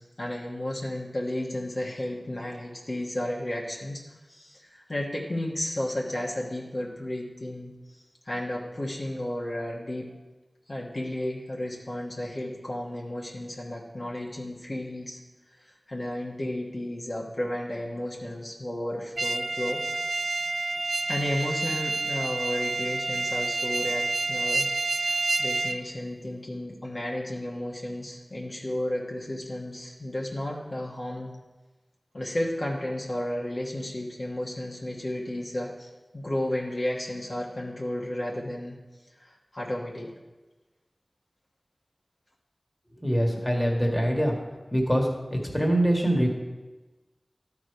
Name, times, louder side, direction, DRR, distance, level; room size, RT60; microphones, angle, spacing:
voice 1, 0.0-4.0 4.3-8.0 8.2-10.1 10.7-15.2 15.6-19.8 21.1-24.7 25.0-31.3 32.1-38.8 39.2-40.1, left 1 dB, 55° left, -3 dB, 1.3 m, -33 dB
sound 1, 19.2-25.8, right 3 dB, 90° right, 0.4 m, -28 dB
voice 2, 43.0-44.4 44.7-46.3, equal, 20° left, 0 dB, 1.6 m, -24 dB
12.0 x 4.9 x 4.7 m, 1.2 s
wide cardioid pair, 55°, 0 cm